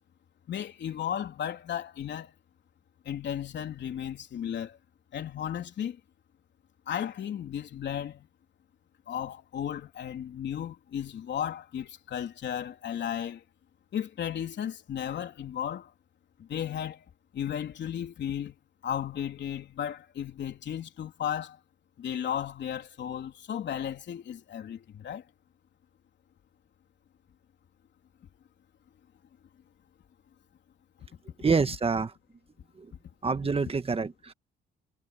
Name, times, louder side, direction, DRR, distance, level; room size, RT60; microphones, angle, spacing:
voice 1, 0.5-2.3 3.1-4.8 5.1-6.0 6.9-8.3 9.1-13.4 13.9-15.9 16.4-17.1 17.3-18.6 18.8-21.6 22.0-25.2, left 9 dB, 65° left, 3.6 m, -34 dB
voice 2, 31.4-32.1 32.8-32.9 33.2-34.3, right 4 dB, 30° right, 1.7 m, -27 dB
cardioid pair, 90°, 20 cm